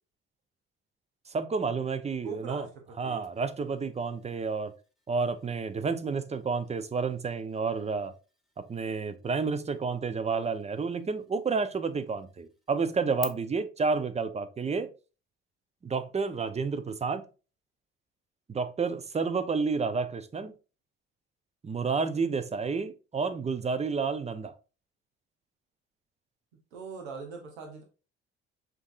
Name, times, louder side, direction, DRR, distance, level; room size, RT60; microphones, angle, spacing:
voice 1, 1.3-2.6 3.0-4.7 5.1-8.1 8.6-14.9 15.8-17.2 18.5-20.5 21.6-24.5, right 4 dB, 20° right, 0.5 m, -30 dB
voice 2, 2.2-3.2 26.7-27.8, right 5 dB, 90° right, 0.7 m, -41 dB
sound 1, 3.2-13.2, left 1 dB, ahead, 0.9 m, -51 dB
6.7 x 2.7 x 2.4 m
hypercardioid pair, 55°, 31 cm